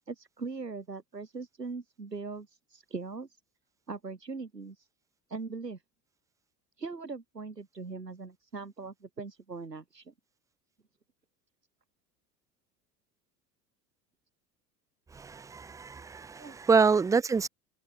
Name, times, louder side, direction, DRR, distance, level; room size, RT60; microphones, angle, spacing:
voice 1, 0.0-3.3 3.9-4.8 5.3-5.8 6.8-10.1 16.4-16.6, right 4 dB, 85° right, 7.3 m, -40 dB
voice 2, 15.1-17.5, right 5 dB, 5° right, 0.4 m, -26 dB
figure-of-eight pair, 70°, 48 cm